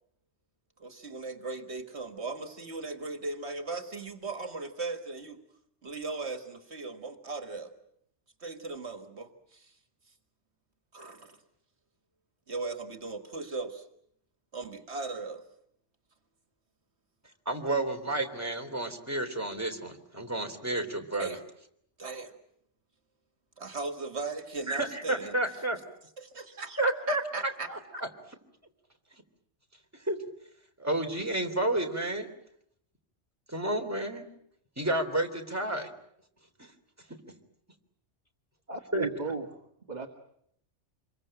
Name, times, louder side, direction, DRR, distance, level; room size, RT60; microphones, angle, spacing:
voice 1, 0.8-5.4 5.8-7.7 8.4-9.7 10.9-11.4 12.5-13.9 14.5-15.4 21.1-21.4 22.0-22.4 23.6-25.4 26.2-28.0, right 3 dB, 70° right, 7 dB, 2.0 m, -38 dB
voice 2, 17.4-21.4 24.7-25.8 26.8-28.1 30.0-30.2 30.8-32.3 33.5-34.2 34.8-35.9 36.6-36.7 38.9-39.1, right 1 dB, 15° right, 3 dB, 3.2 m, -31 dB
voice 3, 38.7-40.1, right 4 dB, 35° right, 4 dB, 2.0 m, -36 dB
27.5 x 23.0 x 8.9 m, 0.72 s
omnidirectional pair, 1.2 m